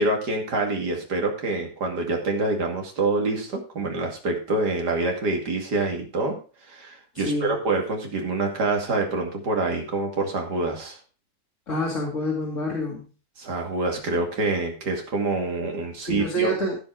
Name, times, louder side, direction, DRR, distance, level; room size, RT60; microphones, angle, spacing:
voice 1, 0.0-6.4 6.7-11.0 13.4-16.5, right 2 dB, 85° right, 2 dB, 3.0 m, -26 dB
voice 2, 7.2-7.6 11.7-13.1 16.1-16.8, equal, 50° left, -4 dB, 2.8 m, -27 dB
15.5 x 5.2 x 4.8 m, 0.36 s
omnidirectional pair, 1.7 m